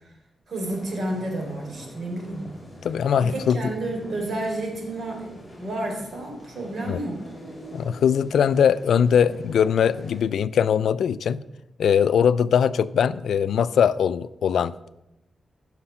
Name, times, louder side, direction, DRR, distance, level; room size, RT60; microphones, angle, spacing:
voice 1, 0.5-2.4 3.3-7.2, right 1 dB, 55° right, 2 dB, 3.5 m, -31 dB
sound 1, 0.6-10.2, equal, 10° left, 4.5 m, -44 dB
voice 2, 2.8-3.7 6.9-7.0 7.7-11.4 11.8-14.7, left 8 dB, 85° left, 17 dB, 0.4 m, -21 dB
15.5 x 6.4 x 5.8 m, 0.93 s
cardioid pair, 95°, 0 cm